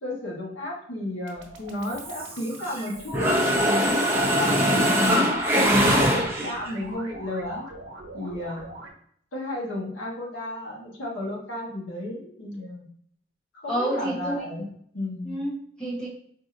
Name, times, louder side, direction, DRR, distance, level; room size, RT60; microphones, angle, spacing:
voice 1, 0.0-5.2 5.5-7.7 8.1-8.7 9.3-12.9 13.6-14.6 14.9-15.4, left 1 dB, 90° left, -3 dB, 1.2 m, -32 dB
sound 1, 1.2-8.9, right 2 dB, 75° right, 0.9 m, -42 dB
Mechanisms, 1.9-2.8 3.1-6.7, equal, 10° right, 0.5 m, -22 dB
voice 2, 13.7-14.5 15.2-16.1, right 1 dB, 5° left, -6 dB, 1.0 m, -29 dB
4.7 x 2.6 x 2.5 m, 0.65 s
head